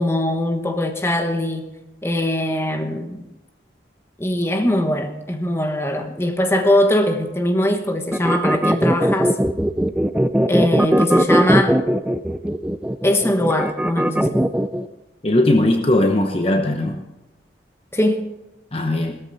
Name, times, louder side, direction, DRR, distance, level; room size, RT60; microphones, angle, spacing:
voice 1, 0.0-1.7 2.0-3.2 4.2-9.4 10.5-11.7 13.0-14.4 17.9-18.2, left 1 dB, 15° left, 5 dB, 1.2 m, -21 dB
sound 1, 8.1-14.9, equal, 5° right, 0.4 m, -19 dB
voice 2, 15.2-17.0 18.7-19.2, left 1 dB, 35° left, 4 dB, 0.9 m, -18 dB
17.0 x 13.5 x 4.1 m, 0.95 s
head